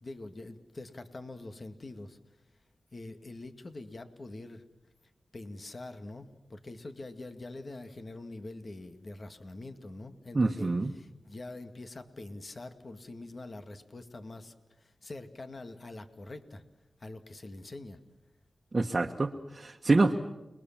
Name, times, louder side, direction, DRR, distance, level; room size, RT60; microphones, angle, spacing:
voice 1, 0.0-2.2 2.9-4.6 5.3-14.5 15.0-16.6 17.0-18.0, left 2 dB, 45° left, 8 dB, 2.1 m, -44 dB
voice 2, 10.3-10.9 18.7-20.1, right 3 dB, 40° right, 2 dB, 1.4 m, -26 dB
30.0 x 22.0 x 7.4 m, 1.0 s
cardioid pair, 60°, 0 cm